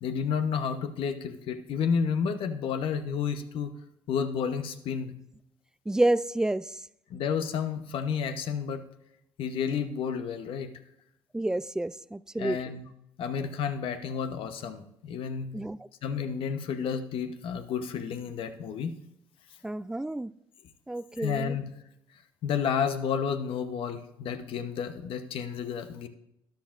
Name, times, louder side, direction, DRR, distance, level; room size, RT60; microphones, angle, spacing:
voice 1, 0.0-3.7 4.1-5.1 7.1-8.9 9.4-10.7 12.4-12.9 13.2-15.5 16.0-18.9 21.2-21.7 22.4-26.1, left 7 dB, 70° left, 0.9 m, -31 dB
voice 2, 5.9-6.6 11.3-12.6 15.5-15.8 19.6-20.3 20.9-21.6, right 1 dB, 5° right, 0.3 m, -29 dB
13.0 x 10.5 x 2.5 m
supercardioid pair, 65°, 10 cm